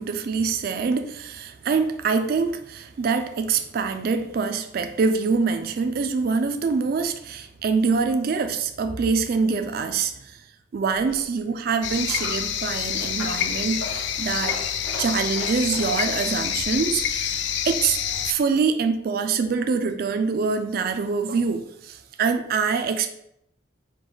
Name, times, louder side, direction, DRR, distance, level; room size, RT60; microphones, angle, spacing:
voice 1, 0.0-10.4 10.7-14.6 15.0-18.0 18.2-23.1, right 5 dB, 50° right, 8 dB, 0.3 m, -25 dB
Coin (dropping), 10.9-18.4, left 1 dB, 85° left, 1.2 m, -39 dB
sound 1, 11.8-18.3, left 9 dB, 60° left, 0.3 m, -27 dB
4.9 x 2.2 x 3.8 m, 0.77 s
head